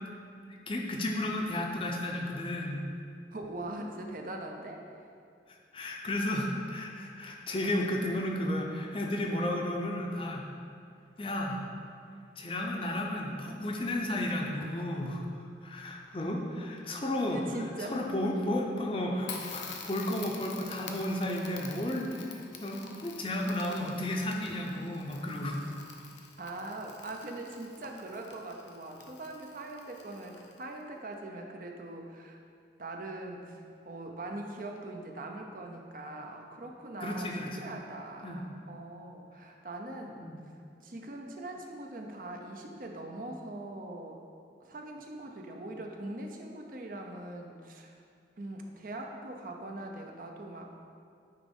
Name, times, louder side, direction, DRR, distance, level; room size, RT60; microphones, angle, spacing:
voice 1, 0.7-2.9 5.7-10.4 11.2-11.6 12.4-15.2 15.6-17.4 17.8-25.6 37.0-37.5 38.2-38.4 40.2-40.4, left 1 dB, 30° left, 0 dB, 0.6 m, -33 dB
voice 2, 3.3-4.8 17.3-18.0 26.4-32.4 32.8-40.2 40.8-44.2 44.6-48.0 48.4-50.7, right 2 dB, 50° right, 2 dB, 0.6 m, -42 dB
Crackle, 19.2-30.8, left 5 dB, 80° left, 0.7 m, -47 dB
9.4 x 3.2 x 5.3 m, 2.3 s
head